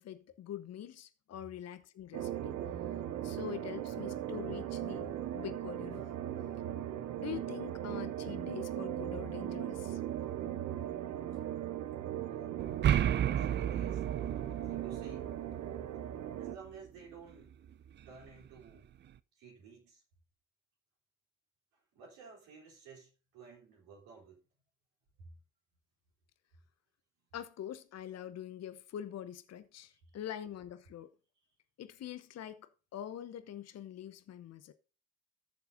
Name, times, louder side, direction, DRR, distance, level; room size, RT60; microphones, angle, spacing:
voice 1, 0.0-2.6 3.2-5.1 5.3-6.1 7.2-10.0 27.3-31.1 31.8-34.7, left 10 dB, 45° left, 0.9 m, -44 dB
sound 1, 2.1-16.5, right 11 dB, 50° right, 0.8 m, -38 dB
voice 2, 12.1-12.6 13.4-14.1 14.6-15.4 16.4-17.6 18.1-18.9 19.4-20.0 21.9-24.4 25.2-25.4 29.9-30.2, right 5 dB, 65° right, 3.6 m, -54 dB
sound 2, 12.6-16.6, right 10 dB, 30° right, 0.4 m, -33 dB
18.0 x 6.8 x 2.6 m
figure-of-eight pair, 40°, 37 cm